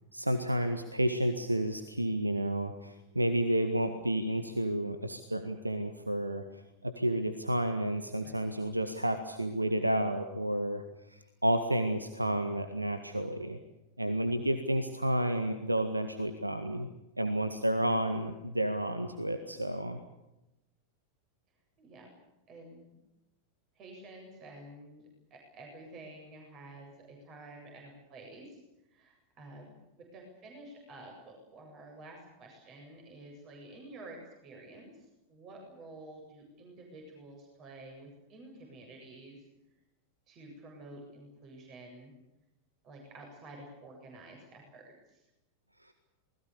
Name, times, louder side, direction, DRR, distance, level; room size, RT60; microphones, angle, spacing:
voice 1, 0.1-10.8 11.1-13.6 14.0-16.9 17.2-20.0 45.8-45.9, right 1 dB, 85° right, 9 dB, 1.8 m, -31 dB
voice 2, 8.1-8.4 21.8-22.1 22.5-23.0 23.8-28.6 28.9-39.4 40.3-42.1 42.8-45.2, right 2 dB, 35° right, 2 dB, 7.8 m, -50 dB
28.0 x 21.0 x 7.0 m, 0.92 s
figure-of-eight pair, 90°, 0 cm